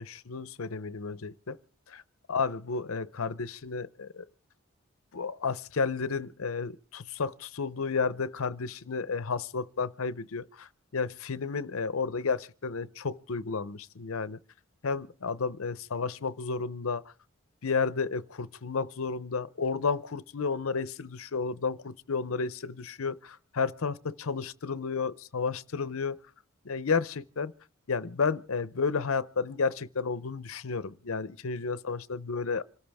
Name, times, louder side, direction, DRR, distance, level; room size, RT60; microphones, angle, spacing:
voice 1, 0.0-1.6 1.9-2.0 2.3-4.3 5.1-14.4 14.8-17.0 17.6-26.2 26.6-27.5 27.9-32.6, left 5 dB, 70° left, 0.7 m, -32 dB
26.5 x 14.0 x 3.5 m
head